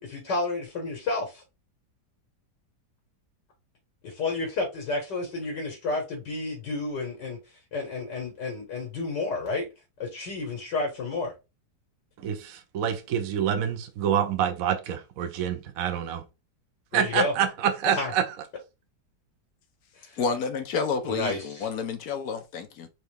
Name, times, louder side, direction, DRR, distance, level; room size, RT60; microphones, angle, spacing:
voice 1, 0.0-1.4 4.0-7.4 7.7-9.7 10.0-11.3 16.9-17.3 17.9-18.1 20.0-20.2 21.1-21.7, left 3 dB, 80° left, 2.2 m, -31 dB
voice 2, 12.2-16.2 16.9-18.2, right 9 dB, 65° right, 1.0 m, -27 dB
voice 3, 20.2-22.9, left 5 dB, 65° left, 1.2 m, -30 dB
4.6 x 3.3 x 3.3 m
omnidirectional pair, 1.8 m